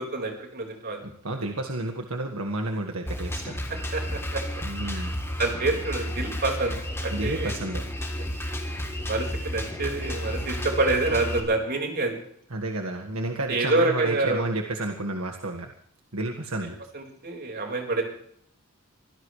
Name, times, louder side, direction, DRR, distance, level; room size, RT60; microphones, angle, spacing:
voice 1, 0.0-1.0 3.9-4.4 4.9-5.1 5.4-6.8 7.0-7.5 8.7-12.2 13.5-14.4 16.9-18.0, right 2 dB, 50° right, 1 dB, 4.9 m, -27 dB
voice 2, 1.0-3.6 4.6-5.1 7.1-7.8 12.5-15.7 16.1-16.8, right 2 dB, 75° right, 3 dB, 1.7 m, -31 dB
Drum kit, 3.1-11.4, equal, 10° left, 3.2 m, -32 dB
25.0 x 17.0 x 3.3 m, 0.66 s
head